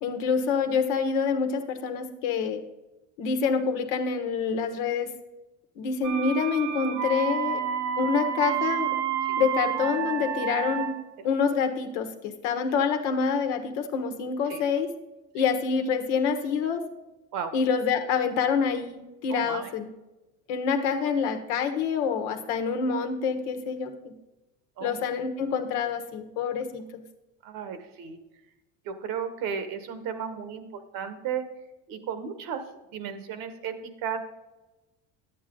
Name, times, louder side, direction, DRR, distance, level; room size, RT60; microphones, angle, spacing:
voice 1, 0.0-2.6 3.2-5.1 5.8-7.6 8.0-9.0 9.4-14.9 15.3-16.9 17.5-19.9 20.5-24.1 24.8-26.8, left 6 dB, 85° left, 6 dB, 1.3 m, -27 dB
sound 1, 6.0-11.1, right 9 dB, 50° right, 0.9 m, -29 dB
voice 2, 19.3-19.7 24.8-25.0 27.4-28.2 28.8-30.6 30.9-31.5 31.9-32.6 32.9-34.2, right 7 dB, 70° right, 9 dB, 1.4 m, -34 dB
10.0 x 8.5 x 3.8 m, 1.1 s
supercardioid pair, 90°, 36 cm